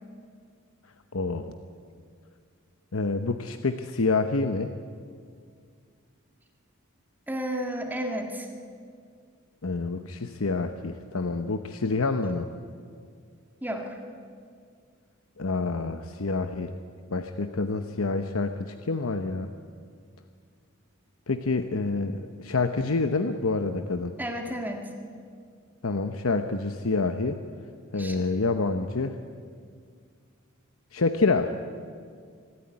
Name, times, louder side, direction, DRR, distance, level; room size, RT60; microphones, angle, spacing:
voice 1, 1.1-1.5 2.9-4.7 9.6-12.5 15.4-16.7 17.1-19.5 21.3-24.2 25.8-27.4 27.9-29.2 30.9-31.6, left 3 dB, 75° left, 8 dB, 0.9 m, -27 dB
voice 2, 7.3-8.5 13.6-14.0 24.2-24.9 27.9-28.2, equal, 10° right, 3 dB, 1.7 m, -32 dB
25.0 x 13.0 x 9.7 m, 2.1 s
head